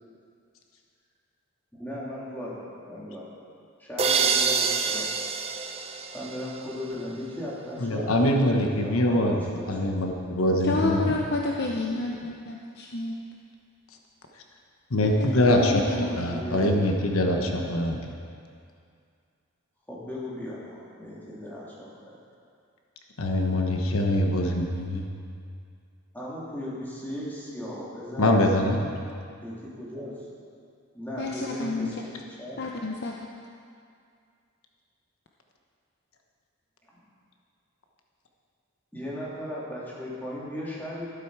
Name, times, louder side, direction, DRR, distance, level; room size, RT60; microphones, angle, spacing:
voice 1, 1.8-3.2 3.8-5.1 6.1-9.7 15.8-17.9 19.9-22.2 26.1-28.4 29.4-30.2 30.9-31.9 32.4-32.6 36.9-37.0 38.9-41.1, equal, 10° left, -7 dB, 2.6 m, -37 dB
sound 1, 4.0-6.8, right 5 dB, 25° right, 0.6 m, -26 dB
voice 2, 7.8-11.2 14.9-18.0 23.2-25.1 28.2-28.9, left 1 dB, 75° left, 2 dB, 1.1 m, -24 dB
voice 3, 10.6-13.2 15.0-16.2 31.2-31.9 32.6-33.1, left 3 dB, 50° left, -1 dB, 0.7 m, -30 dB
12.0 x 12.0 x 4.7 m, 2.3 s
head